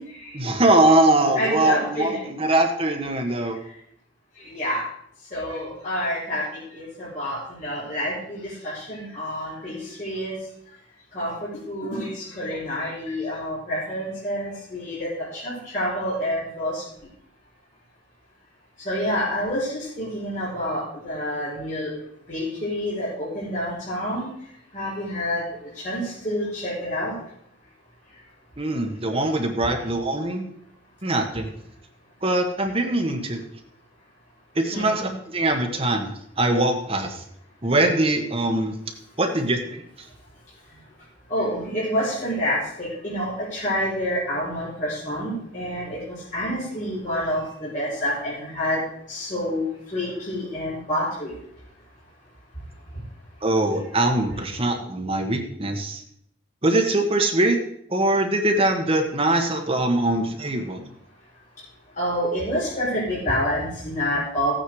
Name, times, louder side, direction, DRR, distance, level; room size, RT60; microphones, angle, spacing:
voice 1, 0.3-3.6 28.6-30.5 31.0-31.5 32.2-33.4 34.5-36.1 36.4-37.2 37.6-38.8 39.2-39.8 53.4-56.0 56.6-57.6 57.9-60.8, right 1 dB, 30° right, 3 dB, 1.5 m, -22 dB
voice 2, 1.3-2.3 4.4-4.8 5.3-6.4 6.7-10.3 11.1-16.8 18.8-21.9 22.3-24.3 24.7-25.4 25.8-27.1 34.7-35.1 41.3-46.0 46.3-48.8 49.1-49.6 49.9-51.3 62.0-64.5, equal, 40° left, -8 dB, 5.1 m, -28 dB
15.5 x 9.1 x 4.9 m, 0.71 s
head